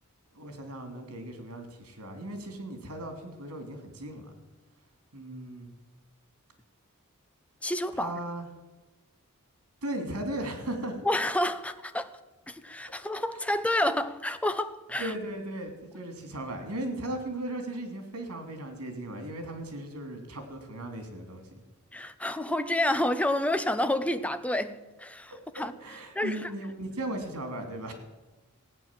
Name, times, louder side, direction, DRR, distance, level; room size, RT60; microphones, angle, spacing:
voice 1, 0.3-4.3 5.1-5.7 8.0-8.5 9.8-11.1 15.0-21.6 25.6-27.9, right 1 dB, 85° right, 3.0 m, -37 dB
voice 2, 7.6-8.1 11.0-12.1 12.5-15.1 21.9-25.7 26.1-26.5, left 1 dB, 5° left, 0.7 m, -29 dB
16.0 x 9.2 x 7.5 m
head